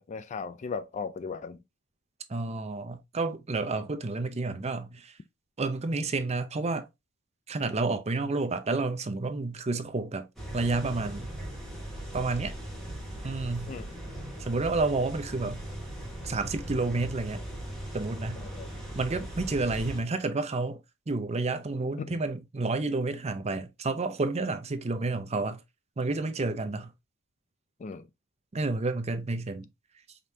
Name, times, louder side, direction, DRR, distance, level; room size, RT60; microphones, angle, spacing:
voice 1, 0.0-1.6 13.7-13.9 18.4-18.7 22.0-22.2 27.8-28.1, left 5 dB, 35° left, 0.3 m, -37 dB
voice 2, 2.3-5.2 5.6-6.9 7.5-10.3 10.5-11.3 12.1-12.5 13.2-13.7 14.4-15.6 16.2-17.4 17.9-18.4 18.9-20.8 21.1-25.6 26.0-26.9 28.5-29.7, right 3 dB, 30° right, 0.5 m, -30 dB
sound 1, 10.4-20.0, right 1 dB, ahead, 1.6 m, -39 dB
5.1 x 3.1 x 2.7 m
head